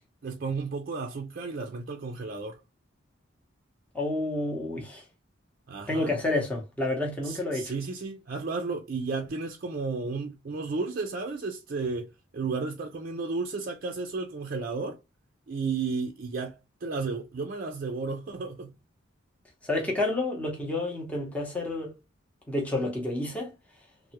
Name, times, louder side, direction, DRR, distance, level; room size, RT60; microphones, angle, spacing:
voice 1, 0.2-2.6 5.7-6.1 7.2-15.0 15.5-18.7 22.7-22.9, right 4 dB, 45° right, 0.4 m, -33 dB
voice 2, 3.9-5.0 5.9-7.7 19.6-21.9 22.5-23.5, left 2 dB, 5° left, 0.7 m, -29 dB
3.2 x 2.1 x 2.8 m
head